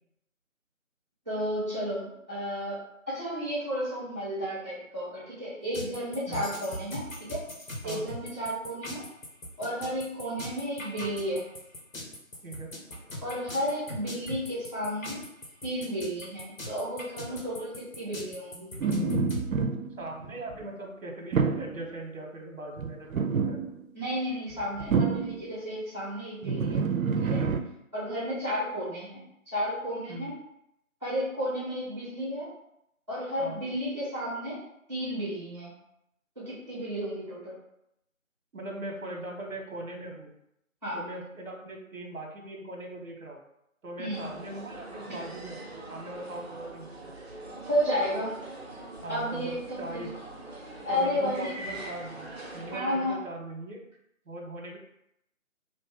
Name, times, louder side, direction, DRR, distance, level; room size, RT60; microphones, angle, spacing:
voice 1, 1.2-2.8 3.1-7.4 7.8-9.0 9.6-11.4 13.2-15.2 15.6-18.7 23.9-26.8 27.2-27.5 27.9-30.3 31.0-32.5 33.1-34.6 34.9-35.7 36.3-37.6 40.8-41.0 44.0-44.3 47.7-48.4 49.1-50.1 50.8-51.6 52.7-53.2, equal, 20° right, -11 dB, 1.2 m, -32 dB
sound 1, 5.7-19.4, left 2 dB, 75° left, 1.2 m, -39 dB
sound 2, 18.8-20.6 21.3-21.8 22.8-23.8 24.5-25.5 26.4-27.6, right 5 dB, 85° right, 0.6 m, -28 dB
voice 2, 20.0-23.6 30.1-30.3 33.4-33.6 38.5-40.3 40.9-43.4 43.8-47.0 49.0-50.1 50.9-53.8 54.3-54.8, right 2 dB, 70° right, 2 dB, 1.1 m, -40 dB
sound 3, 44.1-52.8, right 2 dB, 50° right, 0.8 m, -43 dB
3.1 x 2.6 x 3.6 m, 0.79 s
figure-of-eight pair, 170°, 41 cm